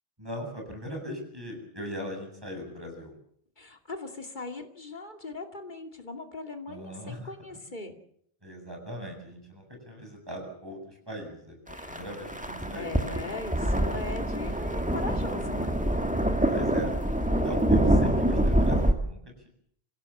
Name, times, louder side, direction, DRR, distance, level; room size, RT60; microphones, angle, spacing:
voice 1, 0.2-3.1 6.7-7.3 8.4-12.9 16.4-16.9 17.4-19.2, equal, 25° right, 2 dB, 7.7 m, -39 dB
voice 2, 3.6-8.0 11.7-12.0 12.7-15.8, left 2 dB, 50° left, 5 dB, 2.6 m, -40 dB
sound 1, 11.7-18.9, right 1 dB, 5° right, 1.9 m, -25 dB
26.5 x 16.5 x 7.3 m, 0.66 s
omnidirectional pair, 1.0 m